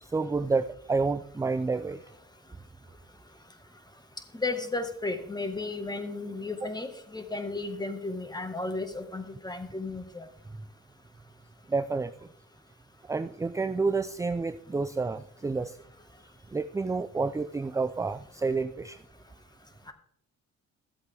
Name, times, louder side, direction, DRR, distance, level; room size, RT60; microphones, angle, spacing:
voice 1, 0.0-2.0 11.7-12.3 13.1-15.8 16.5-19.0, right 4 dB, 10° right, 11 dB, 0.4 m, -29 dB
voice 2, 4.3-10.3 19.9-20.0, left 3 dB, 15° left, 7 dB, 1.6 m, -34 dB
14.0 x 7.9 x 3.5 m, 0.70 s
cardioid pair, 90°, 30 cm